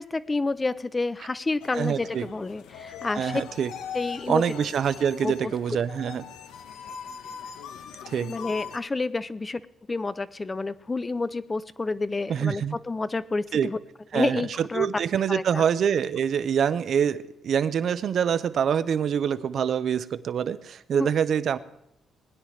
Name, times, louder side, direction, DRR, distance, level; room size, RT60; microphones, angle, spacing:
voice 1, 0.0-3.4 3.9-4.4 5.2-5.5 8.2-9.6 9.9-13.8 14.1-14.9 15.3-15.6 21.0-21.1, left 3 dB, 25° left, 15 dB, 0.5 m, -29 dB
sound 1, 1.6-8.8, left 7 dB, 90° left, 0.8 m, -40 dB
voice 2, 1.7-2.3 3.1-3.7 4.3-6.2 8.1-8.3 12.3-12.8 13.5-13.7 14.1-21.6, right 8 dB, 60° right, 14 dB, 0.6 m, -25 dB
20.5 x 10.0 x 3.2 m, 0.83 s
cardioid pair, 90°, 0 cm